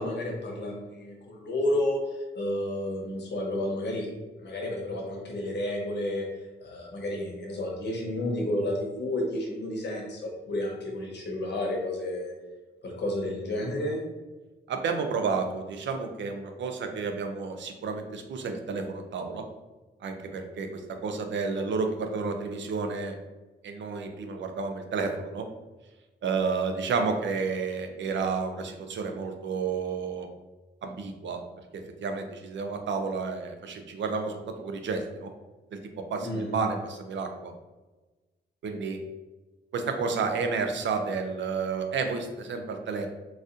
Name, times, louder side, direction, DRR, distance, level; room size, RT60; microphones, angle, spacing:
voice 1, 0.0-4.1 4.4-6.2 6.6-12.3 12.8-14.0 36.2-36.5, left 1 dB, 70° left, -1 dB, 0.9 m, -31 dB
voice 2, 14.7-19.4 20.0-23.2 23.6-25.5 26.2-30.3 30.8-31.4 31.7-35.3 35.7-35.8 36.1-37.5 38.6-39.0 39.7-43.1, right 4 dB, 80° right, 5 dB, 0.5 m, -31 dB
4.0 x 2.4 x 2.5 m, 1.2 s
wide cardioid pair, 120°, 19 cm